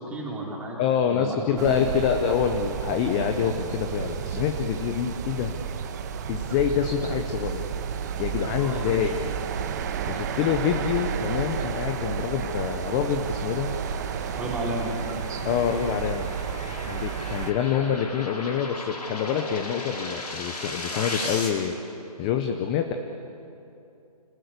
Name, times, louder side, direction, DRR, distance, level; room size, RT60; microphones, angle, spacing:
voice 1, 0.0-0.8 1.1-1.9 8.5-9.3 14.3-14.9, right 1 dB, 5° right, -3 dB, 3.4 m, -33 dB
voice 2, 0.8-5.5 6.3-7.6 8.2-9.2 10.1-13.7 15.4-16.3 16.9-21.7 22.2-22.9, left 8 dB, 15° left, 6 dB, 0.7 m, -26 dB
sound 1, 1.6-17.5, right 7 dB, 25° right, 1.2 m, -32 dB
sound 2, 12.6-21.5, left 2 dB, 80° left, 5.9 m, -37 dB
29.5 x 19.5 x 8.1 m, 2.7 s
hypercardioid pair, 160°, 20 cm